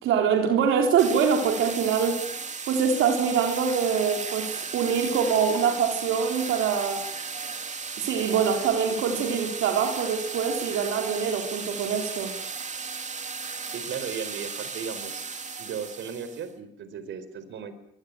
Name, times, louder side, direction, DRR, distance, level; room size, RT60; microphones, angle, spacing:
voice 1, 0.0-2.2 2.7-7.0 8.0-12.3, right 7 dB, 85° right, 3 dB, 3.9 m, -24 dB
sound 1, 1.0-16.5, right 5 dB, 35° right, 3.1 m, -35 dB
voice 2, 13.7-15.3 15.6-17.8, right 7 dB, 70° right, 12 dB, 4.4 m, -36 dB
25.0 x 19.5 x 9.1 m, 0.73 s
cardioid pair, 90°, 20 cm